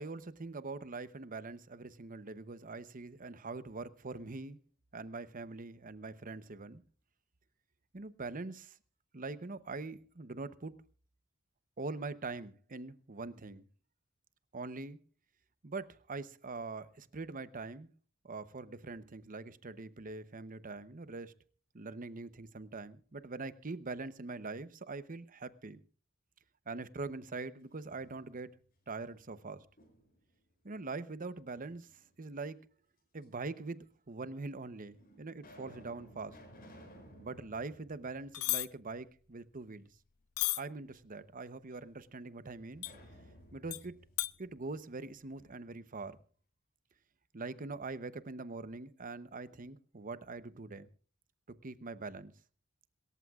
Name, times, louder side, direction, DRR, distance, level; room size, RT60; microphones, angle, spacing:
voice 1, 0.0-4.6 4.9-6.8 7.9-8.8 9.1-10.7 11.8-13.6 14.5-15.0 15.6-17.9 18.2-21.3 21.7-25.8 26.7-28.5 28.9-29.7 30.6-31.9 32.2-32.6 33.1-36.4 37.2-39.9 40.6-42.9 43.5-43.9 44.4-46.2 47.3-50.9 51.6-52.3, right 3 dB, 40° right, 0.8 m, -43 dB
sound 1, 27.6-28.6 29.0-30.3 31.5-32.3 33.2-33.3 34.2-34.3 34.9-39.0 39.3-39.4 42.7-45.5, equal, 45° left, 6.6 m, -58 dB
sound 2, 38.3-38.7 40.4-40.6 42.8-42.9 43.7-43.8 44.2-44.3, left 19 dB, 90° left, 0.6 m, -32 dB
27.0 x 14.5 x 2.4 m
head